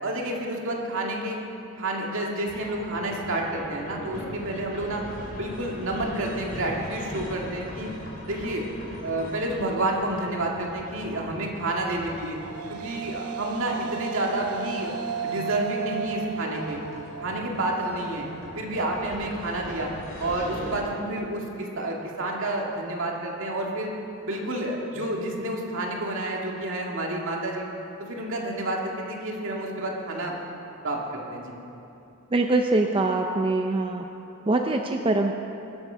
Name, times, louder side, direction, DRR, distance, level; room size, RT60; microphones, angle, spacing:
voice 1, 0.0-1.4 1.8-5.0 5.4-7.9 8.3-8.6 9.0-12.4 12.7-14.9 15.2-16.8 17.2-18.3 18.6-19.9 20.2-23.9 24.3-27.6 28.0-30.3 30.8-31.5, right 1 dB, 65° right, -1 dB, 2.1 m, -29 dB
sound 1, 2.5-20.8, left 1 dB, 40° left, 2.6 m, -41 dB
sound 2, 12.1-20.7, right 8 dB, 85° right, 0.5 m, -37 dB
voice 2, 32.3-34.1 34.5-35.3, right 2 dB, 25° right, 3 dB, 0.5 m, -23 dB
21.0 x 7.8 x 5.6 m, 2.8 s
head